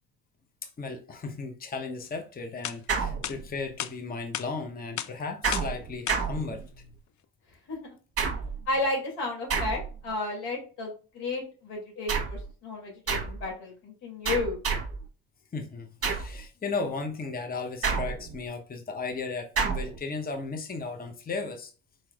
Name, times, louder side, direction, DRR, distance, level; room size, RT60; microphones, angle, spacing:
voice 1, 0.8-6.6 12.0-12.1 15.5-21.7, left 4 dB, 20° left, 0.8 m, -35 dB
sound 1, 2.6-2.8 3.2-3.4 3.8-3.9 4.3-4.5 5.0-5.1 5.5-5.7 6.1-6.2, left 11 dB, 50° left, 0.4 m, -33 dB
sound 2, 2.9-3.7 5.4-7.0 8.2-8.7 9.5-10.1 12.1-12.5 13.1-13.5 14.2-15.1 16.0-16.4 17.8-18.5 19.6-20.0, right 5 dB, 35° right, 1.2 m, -30 dB
voice 2, 8.7-14.6, left 2 dB, 85° left, 2.4 m, -33 dB
4.6 x 4.4 x 2.3 m
cardioid pair, 85°, 40 cm